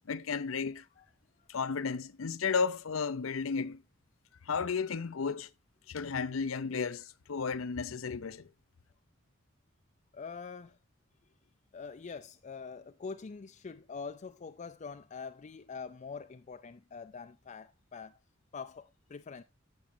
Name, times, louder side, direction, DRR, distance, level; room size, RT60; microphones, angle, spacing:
voice 1, 0.1-0.8 1.5-3.8 4.5-5.5 5.9-8.4, left 5 dB, 90° left, 0.6 m, -33 dB
voice 2, 10.1-10.8 11.7-18.2 18.5-19.4, left 5 dB, 35° left, 0.4 m, -44 dB
16.0 x 6.3 x 2.6 m
head